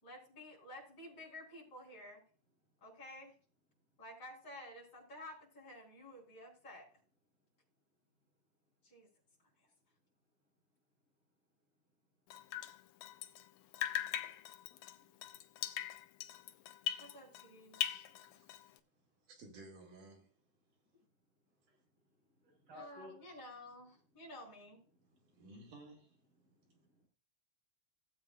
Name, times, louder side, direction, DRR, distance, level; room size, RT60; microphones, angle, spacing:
voice 1, 0.0-2.2 2.8-3.3 4.0-6.9 8.8-9.1 9.6-9.7 17.0-18.1 22.7-24.8, left 1 dB, 30° left, 4.6 m, -52 dB
Drip, 12.3-13.5 13.7-17.5 17.7-18.8, left 11 dB, 85° left, 1.4 m, -41 dB
voice 2, 18.2-18.7 19.3-20.3 25.3-26.1, right 2 dB, 90° right, 4.0 m, -55 dB
voice 3, 22.1-23.4 25.2-25.5 26.4-27.1, left 1 dB, 40° right, 6.1 m, -58 dB
16.5 x 8.1 x 2.4 m
omnidirectional pair, 3.5 m